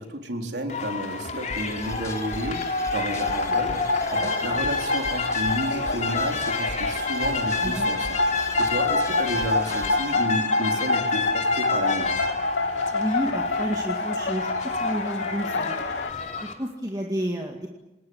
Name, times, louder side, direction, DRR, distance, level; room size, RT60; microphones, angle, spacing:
voice 1, 0.0-12.1, equal, 80° right, 3 dB, 3.7 m, -32 dB
sound 1, 0.7-16.5, left 4 dB, 40° left, 3.1 m, -30 dB
sound 2, 1.5-10.2, left 1 dB, 15° left, 2.7 m, -40 dB
sound 3, 3.2-16.1, left 2 dB, 85° left, 1.7 m, -27 dB
voice 2, 12.9-15.8 16.4-17.7, equal, 20° right, 1 dB, 2.2 m, -30 dB
28.5 x 20.0 x 7.9 m, 1.0 s
head